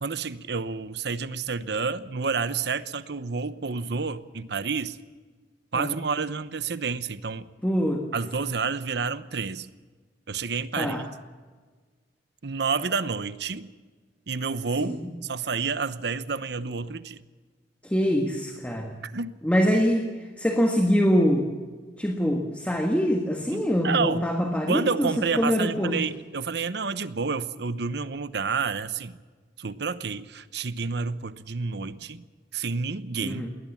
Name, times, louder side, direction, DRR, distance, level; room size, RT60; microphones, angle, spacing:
voice 1, 0.0-5.0 5.7-7.5 8.1-9.7 10.3-11.0 12.4-13.7 14.3-15.0 15.2-17.2 19.0-19.4 23.5-24.2 24.7-29.2 29.6-32.2 32.5-33.4, right 5 dB, 70° right, 14 dB, 0.9 m, -29 dB
voice 2, 7.6-8.0 10.8-11.1 14.8-15.1 17.8-18.9 19.4-20.1 20.4-21.5 22.0-26.0 33.2-33.5, equal, 10° left, 3 dB, 1.6 m, -24 dB
21.0 x 18.5 x 7.2 m, 1.4 s
head